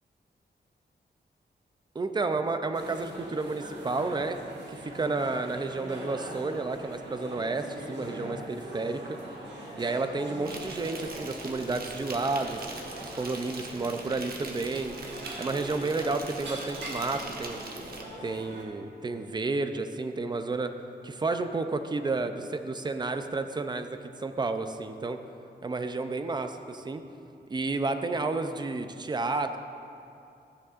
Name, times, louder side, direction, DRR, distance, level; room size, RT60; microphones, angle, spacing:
voice 1, 1.9-4.4 4.7-9.2 9.8-12.7 13.0-15.0 15.4-17.6 18.2-20.7 21.0-25.2 25.6-27.0 27.5-29.6, right 3 dB, 25° right, 8 dB, 0.4 m, -31 dB
sound 1, 2.7-18.6, right 1 dB, 90° right, 1.6 m, -41 dB
Insect, 10.5-18.0, right 3 dB, 60° right, 1.0 m, -42 dB
14.0 x 9.9 x 2.4 m, 2.7 s
wide cardioid pair, 175°, 18 cm